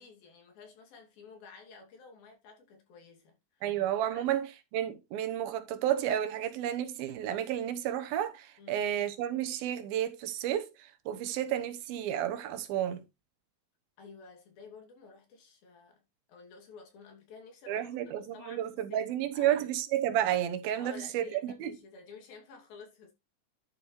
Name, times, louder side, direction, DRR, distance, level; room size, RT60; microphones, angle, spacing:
voice 1, 0.0-3.6 4.1-4.3 8.6-8.9 14.0-16.0 16.3-19.6 20.8-23.1, left 5 dB, 75° left, 4.4 m, -52 dB
voice 2, 3.6-13.0 17.7-21.7, right 11 dB, 80° right, 2.9 m, -31 dB
11.0 x 6.9 x 3.1 m
omnidirectional pair, 4.2 m